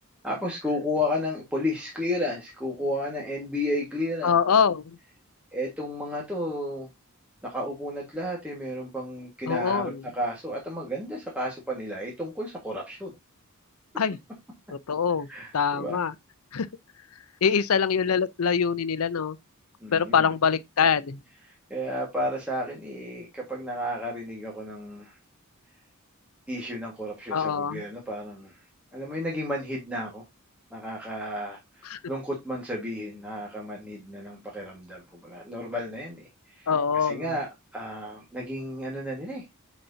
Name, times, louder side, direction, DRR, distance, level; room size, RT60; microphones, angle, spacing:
voice 1, 0.2-4.3 5.5-6.9 7.4-13.1 15.3-16.0 19.8-20.3 21.5-25.2 26.5-28.6 28.9-30.2 30.7-36.7 36.9-39.4, left 1 dB, 5° right, 1.6 m, -32 dB
voice 2, 4.2-4.8 9.5-10.0 14.0-14.2 14.9-15.3 15.5-16.1 16.5-16.7 17.4-19.4 19.9-21.2 27.3-27.8 31.9-32.0 36.7-37.2, left 6 dB, 80° left, 0.6 m, -24 dB
8.8 x 4.2 x 2.7 m
head